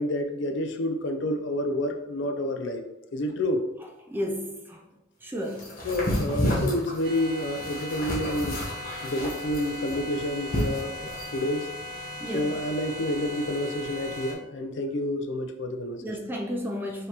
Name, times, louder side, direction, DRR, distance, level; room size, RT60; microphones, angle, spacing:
voice 1, 0.0-2.8 3.1-3.6 5.8-8.6 9.0-11.7 12.3-16.0, left 1 dB, 60° left, 6 dB, 0.4 m, -29 dB
voice 2, 4.1-4.8 5.2-5.7 12.2-12.5 16.0-17.1, equal, 10° right, 0 dB, 0.4 m, -32 dB
sound 1, 5.6-11.4, equal, 45° left, 1.2 m, -30 dB
sound 2, 7.0-14.3, left 1 dB, 45° right, 0.7 m, -38 dB
5.1 x 2.7 x 2.9 m, 0.94 s
head